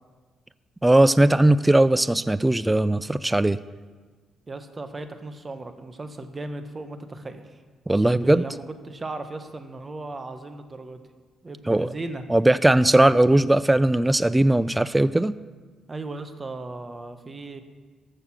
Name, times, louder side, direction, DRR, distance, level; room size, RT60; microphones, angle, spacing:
voice 1, 0.8-3.6 7.9-8.4 11.7-11.9 12.3-15.3, right 1 dB, 10° right, 16 dB, 0.3 m, -19 dB
voice 2, 4.5-7.4 7.9-11.0 11.4-12.2 15.9-17.6, right 2 dB, 25° right, 8 dB, 1.1 m, -36 dB
14.5 x 6.5 x 6.1 m, 1.4 s
cardioid pair, 90°, 0 cm